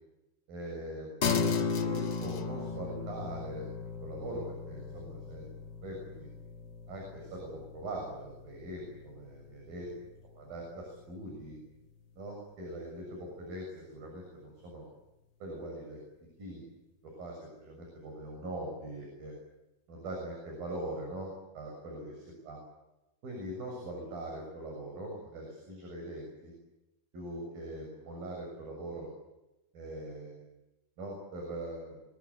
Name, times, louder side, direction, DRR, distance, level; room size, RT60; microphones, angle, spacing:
voice 1, 0.5-3.7 4.0-5.5 5.8-6.3 6.9-9.9 10.4-11.6 12.2-14.9 15.4-16.0 16.4-16.6 17.0-19.3 19.9-22.6 23.2-26.5 27.1-29.1 29.7-30.5 31.0-32.0, right 1 dB, 70° right, 0 dB, 8.8 m, -42 dB
sound 1, 1.2-10.9, left 5 dB, 45° left, 1.5 m, -36 dB
25.5 x 21.5 x 9.8 m, 0.98 s
omnidirectional pair, 4.2 m